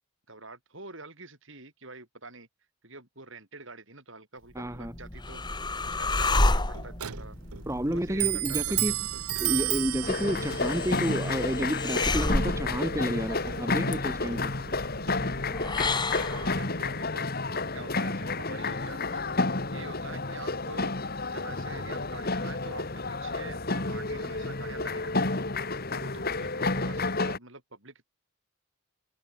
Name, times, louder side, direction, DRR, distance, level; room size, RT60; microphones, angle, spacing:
voice 1, 0.3-2.5 2.8-5.4 5.9-7.4 7.9-9.1 16.1-19.2 19.7-20.9 21.3-25.4 25.9-28.0, right 3 dB, 60° right, 7.2 m, -46 dB
voice 2, 4.5-4.9 7.7-8.9 9.4-14.5, equal, 15° right, 1.6 m, -30 dB
sound 1, 4.6-16.7, left 2 dB, 20° left, 1.7 m, -32 dB
Clock, 6.4-15.7, right 15 dB, 80° right, 0.7 m, -35 dB
sound 2, 10.0-27.4, left 3 dB, 45° left, 1.9 m, -30 dB
head